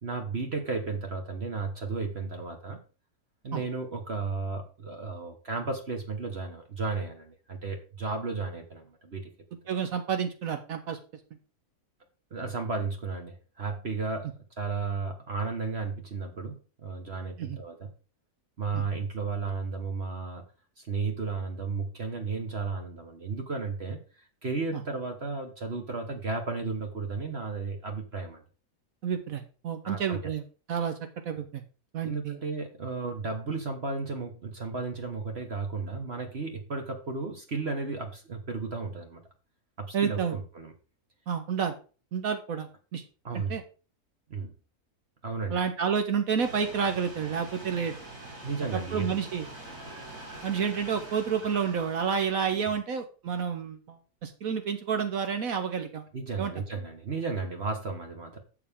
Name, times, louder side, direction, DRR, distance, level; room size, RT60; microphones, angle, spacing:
voice 1, 0.0-2.8 3.4-9.3 9.7-9.8 12.3-17.9 18.6-20.4 20.8-28.4 29.8-30.2 32.0-39.2 39.8-40.7 43.2-43.6 44.3-44.5 45.2-45.6 48.4-49.2 56.1-58.4, right 4 dB, 45° right, 3 dB, 1.5 m, -34 dB
voice 2, 9.7-11.0 17.4-17.6 18.7-18.8 24.7-24.8 29.0-30.9 31.2-31.6 31.9-32.4 39.9-40.4 41.3-41.7 42.1-43.0 43.3-43.6 45.5-48.0 48.7-49.4 50.4-56.0 56.4-56.5, right 7 dB, 70° right, 7 dB, 1.3 m, -30 dB
sound 1, 46.4-52.5, right 2 dB, 85° right, 4.3 m, -44 dB
11.5 x 7.1 x 3.6 m, 0.36 s
omnidirectional pair, 1.6 m